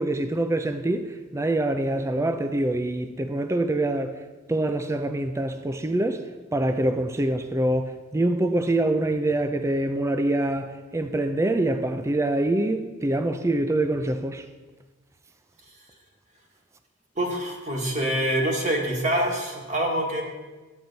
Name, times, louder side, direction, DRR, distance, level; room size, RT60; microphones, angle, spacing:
voice 1, 0.0-4.1 4.5-6.2 6.5-14.4, right 1 dB, 15° right, 0.4 m, -25 dB
voice 2, 17.2-20.2, right 1 dB, 35° right, 1.5 m, -25 dB
10.5 x 7.9 x 4.0 m
head